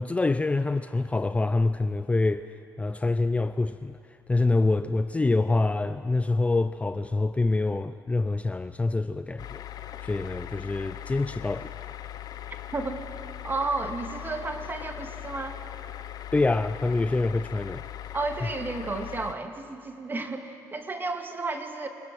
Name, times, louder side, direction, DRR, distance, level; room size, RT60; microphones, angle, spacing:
voice 1, 0.0-4.0 4.3-9.6 10.0-11.7 16.3-17.8, left 3 dB, 15° left, 0.6 m, -26 dB
sound 1, 9.4-19.3, left 12 dB, 60° left, 0.9 m, -40 dB
voice 2, 13.4-15.6 18.1-21.9, right 3 dB, 30° right, 2.3 m, -32 dB
25.0 x 20.0 x 7.7 m
supercardioid pair, 80°, 8 cm